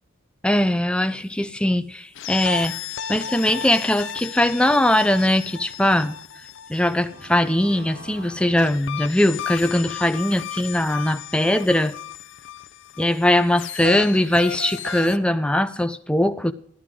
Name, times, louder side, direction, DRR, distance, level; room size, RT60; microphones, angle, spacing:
voice 1, 0.4-2.8 3.1-6.2 6.7-11.9 13.0-16.5, left 1 dB, 5° left, 0.4 m, -21 dB
sound 1, 2.1-7.7 8.6-15.2, left 9 dB, 60° left, 0.5 m, -34 dB
sound 2, 6.1-6.2 6.8-9.6, left 1 dB, 65° right, 5.0 m, -45 dB
15.0 x 12.5 x 3.7 m
head